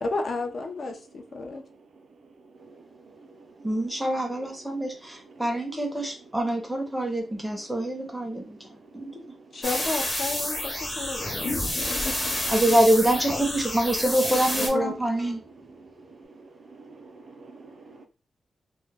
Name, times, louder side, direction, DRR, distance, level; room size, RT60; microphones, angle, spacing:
voice 1, 0.0-1.6 9.5-12.2 14.3-14.9, left 3 dB, 50° left, 4 dB, 0.4 m, -32 dB
voice 2, 3.6-8.6 8.9-9.2 12.5-15.4, right 1 dB, 5° right, 2 dB, 0.5 m, -25 dB
sound 1, 9.6-14.7, left 1 dB, 25° left, 0.8 m, -29 dB
sound 2, 11.2-16.1, left 2 dB, 85° left, 0.9 m, -39 dB
voice 3, 16.6-18.1, right 3 dB, 65° right, 6 dB, 0.4 m, -48 dB
2.1 x 2.1 x 3.2 m, 0.32 s
wide cardioid pair, 175°, 0 cm